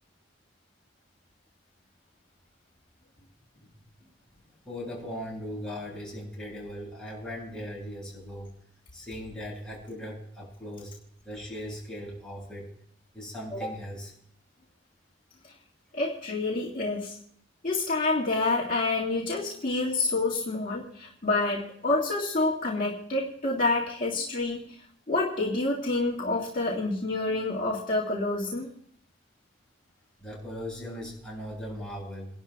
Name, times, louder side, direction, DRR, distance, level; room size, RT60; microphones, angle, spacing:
voice 1, 3.5-4.1 4.6-8.5 8.9-11.0 11.2-12.7 13.1-14.1 30.2-32.3, equal, 5° left, -6 dB, 7.3 m, -38 dB
voice 2, 15.9-17.1 17.6-24.7 25.1-28.7, left 2 dB, 50° left, -5 dB, 2.0 m, -28 dB
29.0 x 11.5 x 2.4 m, 0.71 s
head